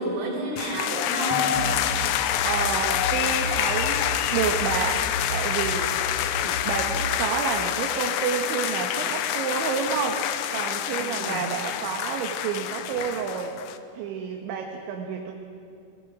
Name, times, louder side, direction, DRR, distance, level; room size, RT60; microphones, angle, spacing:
voice 1, 0.0-1.6 10.9-11.4, right 2 dB, 50° right, -3 dB, 6.8 m, -30 dB
sound 1, 0.6-13.8, left 11 dB, 80° left, 2.6 m, -27 dB
Drum, 1.3-3.9, left 1 dB, 10° left, 2.4 m, -43 dB
sound 2, 1.5-7.1, equal, 45° left, 2.9 m, -34 dB
voice 2, 2.1-6.0 6.4-13.6 13.9-15.3, right 6 dB, 70° right, 1 dB, 3.5 m, -30 dB
29.5 x 21.5 x 5.0 m, 2.4 s
omnidirectional pair, 5.8 m